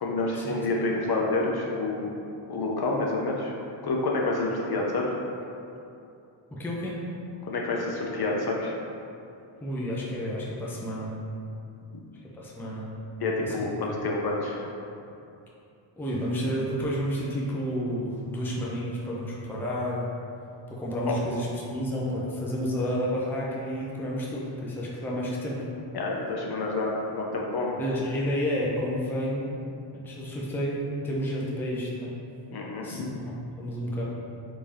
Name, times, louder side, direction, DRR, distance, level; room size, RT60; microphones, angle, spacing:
voice 1, 0.0-2.1 2.5-3.5 3.8-5.1 7.5-8.7 13.2-14.6 25.9-27.8 32.5-33.1, left 2 dB, 55° left, -1 dB, 0.5 m, -28 dB
voice 2, 6.5-7.0 9.6-11.1 12.3-12.9 13.4-13.6 13.9-14.0 16.0-20.1 20.7-25.7 27.8-29.5 29.9-32.1 32.8-34.0, equal, 5° left, -5 dB, 0.4 m, -30 dB
3.4 x 2.7 x 3.2 m, 2.7 s
wide cardioid pair, 100°, 48 cm